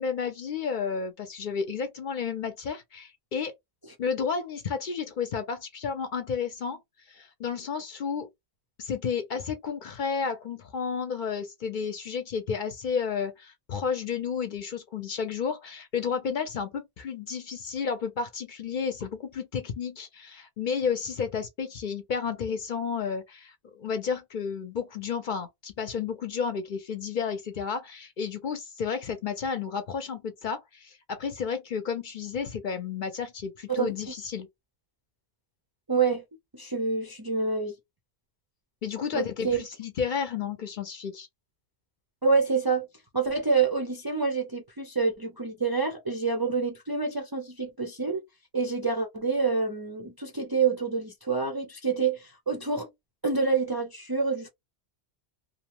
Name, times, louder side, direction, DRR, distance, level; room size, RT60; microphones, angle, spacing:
voice 1, 0.0-3.5 4.0-6.8 7.1-8.3 8.8-34.5 38.8-41.3, left 6 dB, 55° left, 0.6 m, -32 dB
voice 2, 35.9-36.2 36.5-37.7 39.1-39.6 42.2-42.9 43.1-48.2 48.5-52.9 53.2-54.5, right 4 dB, 30° right, 0.4 m, -27 dB
2.7 x 2.0 x 2.9 m
omnidirectional pair, 1.1 m